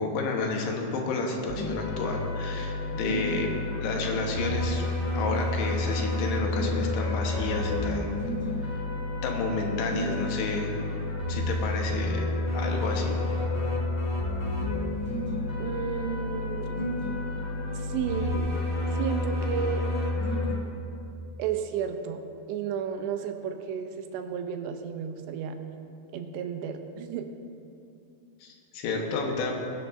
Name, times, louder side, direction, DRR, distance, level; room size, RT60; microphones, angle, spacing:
voice 1, 0.0-3.5 3.8-4.8 5.1-8.1 9.2-10.7 11.3-13.1 28.4-29.5, left 3 dB, 75° left, 1 dB, 3.1 m, -31 dB
sound 1, 1.5-20.5, left 2 dB, 25° left, 0.8 m, -30 dB
voice 2, 15.6-16.8 17.7-18.5 18.9-20.0 21.4-22.2 22.5-25.6 26.1-27.3, right 8 dB, 85° right, 6 dB, 2.9 m, -32 dB
21.0 x 10.5 x 2.6 m, 2.6 s
omnidirectional pair, 4.8 m